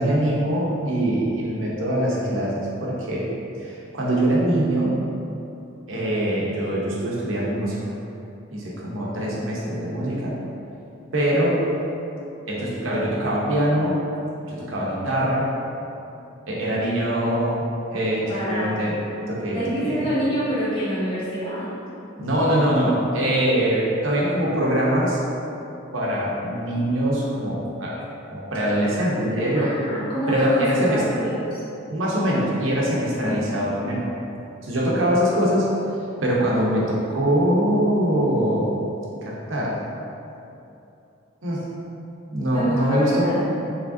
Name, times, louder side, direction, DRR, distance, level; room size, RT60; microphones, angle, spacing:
voice 1, 0.0-3.3 3.6-5.0 5.9-7.9 8.5-10.4 11.1-11.6 12.5-14.0 14.5-15.5 16.5-17.7 17.9-19.0 19.3-20.1 22.2-25.2 25.9-28.0 28.3-29.7 30.3-31.0 31.9-34.1 34.6-35.7 36.2-38.8 39.2-39.8 41.4-41.7 42.3-43.3, right 1 dB, 85° right, -5 dB, 0.8 m, -23 dB
voice 2, 18.3-18.8 19.5-21.7 29.5-31.6 33.2-33.6 34.9-35.4 42.5-43.4, equal, 25° left, -11 dB, 1.4 m, -27 dB
4.9 x 3.2 x 2.6 m, 2.8 s
head